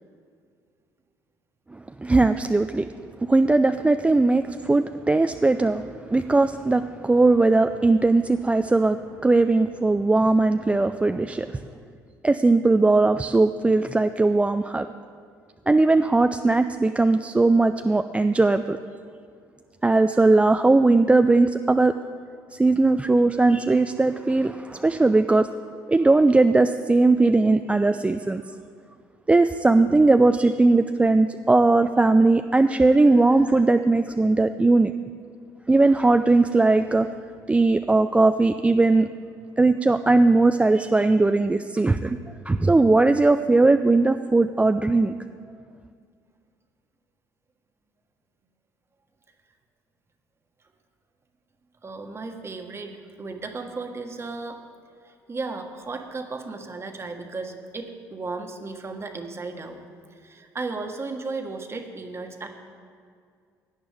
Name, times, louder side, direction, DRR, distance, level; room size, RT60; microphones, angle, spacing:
voice 1, 1.7-2.9 3.2-11.6 12.2-14.9 15.7-18.8 19.8-21.9 22.5-25.5 25.9-28.4 29.3-34.9 35.7-37.1 37.5-39.1 39.6-42.2 42.5-45.1, right 3 dB, 15° right, 8 dB, 0.4 m, -19 dB
voice 2, 51.8-54.7 55.0-59.8 60.1-62.5, right 3 dB, 30° right, 5 dB, 1.4 m, -35 dB
16.5 x 9.6 x 3.5 m, 2.2 s
supercardioid pair, 70°, 8 cm